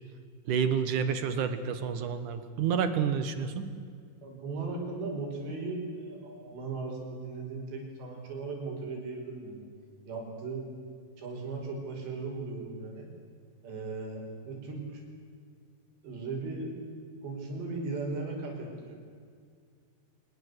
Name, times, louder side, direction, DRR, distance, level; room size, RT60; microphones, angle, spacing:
voice 1, 0.5-3.7, right 7 dB, 60° right, 11 dB, 2.3 m, -29 dB
voice 2, 4.2-9.6 10.1-10.7 11.2-13.1 13.6-15.0 16.0-16.8 17.2-19.0, right 3 dB, 85° right, 1 dB, 7.2 m, -37 dB
24.0 x 21.5 x 8.1 m, 2.1 s
omnidirectional pair, 4.9 m